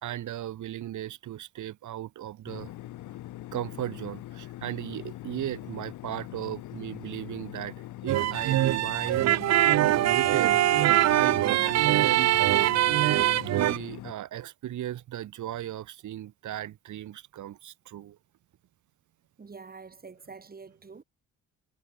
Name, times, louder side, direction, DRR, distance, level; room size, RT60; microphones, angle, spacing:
voice 1, 0.0-2.7 3.5-9.4 9.9-12.3 13.5-18.2, right 12 dB, 75° right, 4.4 m, -36 dB
sound 1, 2.5-14.1, left 15 dB, 85° left, 1.8 m, -42 dB
sound 2, 8.1-13.8, right 14 dB, 60° right, 0.6 m, -23 dB
voice 2, 19.4-21.0, right 4 dB, 30° right, 4.7 m, -46 dB
cardioid pair, 90°, 30 cm